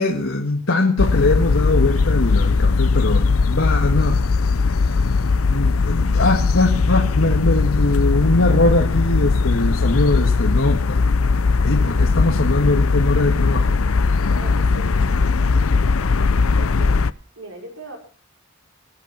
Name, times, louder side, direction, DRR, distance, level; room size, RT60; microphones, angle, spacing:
voice 1, 0.0-4.2 5.4-11.0 11.6-13.7, left 2 dB, 70° left, 0 dB, 1.9 m, -21 dB
sound 1, 1.0-17.1, left 4 dB, 85° left, 0.7 m, -19 dB
voice 2, 14.3-17.0 17.4-18.0, right 2 dB, 75° right, 1 dB, 5.2 m, -40 dB
23.0 x 8.9 x 5.7 m, 0.42 s
head